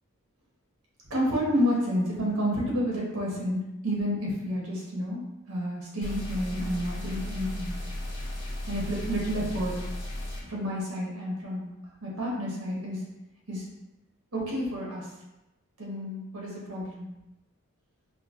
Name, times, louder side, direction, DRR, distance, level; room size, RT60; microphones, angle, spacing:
voice 1, 1.1-5.2 5.5-7.7 8.7-9.7 10.4-11.6 12.0-13.0 13.5-13.7 14.3-15.1 15.8-17.1, equal, 80° right, -4 dB, 1.1 m, -30 dB
sound 1, 6.0-10.4, left 1 dB, 70° left, 1.0 m, -35 dB
4.6 x 2.1 x 2.5 m, 0.95 s
head